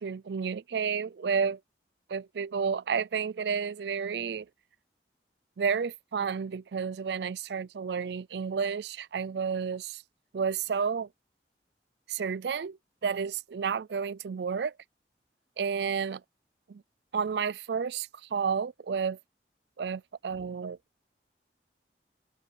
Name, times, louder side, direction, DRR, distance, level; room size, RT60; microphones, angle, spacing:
voice 1, 0.0-1.6 2.1-4.5 5.6-10.0 10.3-11.1 12.1-14.7 15.6-16.2 16.7-16.8 17.1-19.2 19.8-20.8, right 6 dB, 75° right, 0.4 m, -31 dB
head